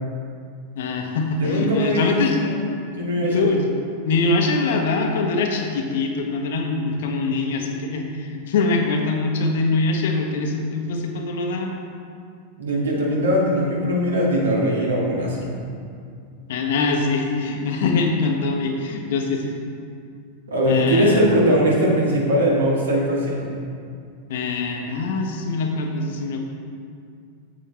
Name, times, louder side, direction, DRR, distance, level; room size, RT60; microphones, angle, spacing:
voice 1, 0.7-2.4 3.2-3.7 4.0-11.7 15.4-15.6 16.5-19.5 20.7-21.3 24.3-26.4, left 3 dB, 55° left, 3 dB, 1.0 m, -23 dB
voice 2, 1.4-2.6 2.9-3.6 12.6-15.5 20.5-23.6, equal, 70° right, -3 dB, 1.9 m, -20 dB
9.1 x 7.6 x 3.4 m, 2.3 s
figure-of-eight pair, 90°, 0 cm